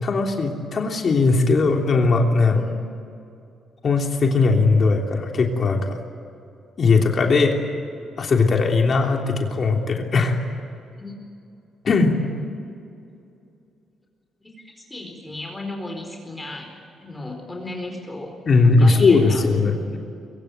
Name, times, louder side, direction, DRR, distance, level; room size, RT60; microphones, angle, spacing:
voice 1, 0.0-2.6 3.8-6.0 6.8-7.6 8.2-10.4 11.8-12.2 18.5-20.0, left 3 dB, 45° left, 2 dB, 3.2 m, -19 dB
voice 2, 14.4-16.7 17.0-18.4 18.8-19.4, left 2 dB, 15° left, 2 dB, 4.6 m, -35 dB
23.5 x 23.0 x 9.2 m, 2.5 s
cardioid pair, 90°, 0 cm